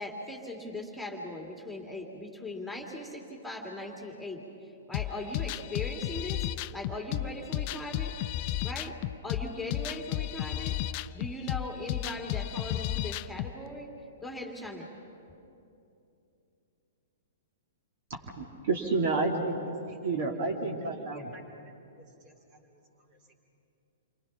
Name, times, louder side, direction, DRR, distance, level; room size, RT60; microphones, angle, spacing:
voice 1, 0.0-4.4 4.9-6.5 6.7-8.1 8.6-9.0 9.2-10.7 11.1-13.9 14.2-14.9, left 1 dB, ahead, 0 dB, 2.5 m, -39 dB
sound 1, 4.9-13.5, left 14 dB, 40° left, 0.5 m, -33 dB
voice 2, 18.1-19.6 19.8-21.3, right 3 dB, 50° right, 0 dB, 2.6 m, -30 dB
voice 3, 18.9-19.3 19.9-20.1 20.4-20.5 21.1-23.3, right 2 dB, 35° right, 1 dB, 4.3 m, -56 dB
29.0 x 24.5 x 5.9 m, 2.7 s
figure-of-eight pair, 110°, 0 cm